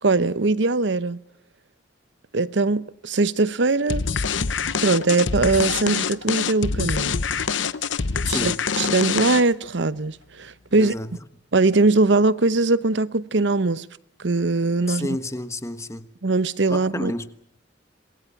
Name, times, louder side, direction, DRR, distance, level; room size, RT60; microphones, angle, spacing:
voice 1, 0.0-1.2 2.3-4.1 4.8-7.2 8.3-10.9 11.5-13.9 14.2-15.2 16.2-17.1, right 3 dB, 70° right, 0.9 m, -21 dB
sound 1, 3.9-9.7, left 6 dB, 85° left, 0.9 m, -25 dB
voice 2, 8.3-8.6 10.7-11.2 14.9-16.1 16.7-17.3, left 1 dB, 15° left, 1.4 m, -30 dB
27.0 x 21.0 x 7.1 m
head